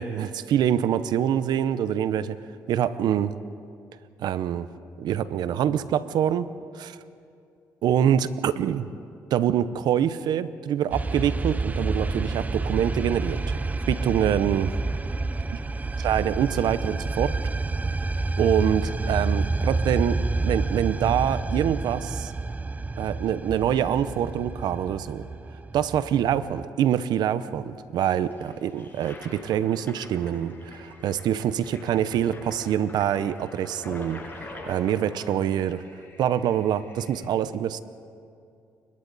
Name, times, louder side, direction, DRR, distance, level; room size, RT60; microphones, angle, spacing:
voice 1, 0.0-2.4 2.7-3.3 4.2-4.7 5.0-7.0 7.8-8.9 9.3-13.6 13.9-14.8 16.0-17.4 18.4-22.3 23.0-25.3 25.7-34.2 34.7-35.8 36.2-37.8, right 10 dB, 80° right, 14 dB, 0.7 m, -25 dB
sound 1, 10.9-26.6, right 3 dB, 20° right, 0.6 m, -29 dB
Toilet flush, 28.1-37.2, left 2 dB, 25° left, 6.8 m, -44 dB
29.0 x 23.5 x 4.1 m, 2.5 s
cardioid pair, 75°, 7 cm